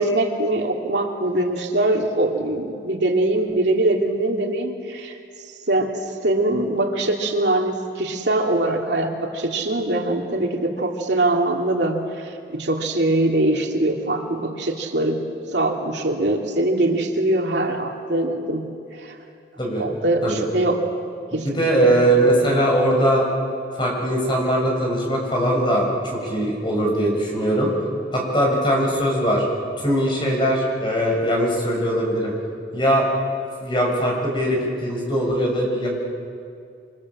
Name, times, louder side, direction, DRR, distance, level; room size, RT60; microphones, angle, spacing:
voice 1, 0.0-5.2 5.7-15.2 15.5-18.7 19.0-19.2 19.8-20.9 21.3-21.5 21.8-22.0, right 1 dB, 90° right, 1 dB, 2.9 m, -22 dB
voice 2, 21.4-23.3 23.8-27.7 28.1-29.4 29.8-32.3 32.7-33.1 33.6-35.9, right 1 dB, 30° left, -2 dB, 7.1 m, -21 dB
28.0 x 26.0 x 7.5 m, 2.4 s
head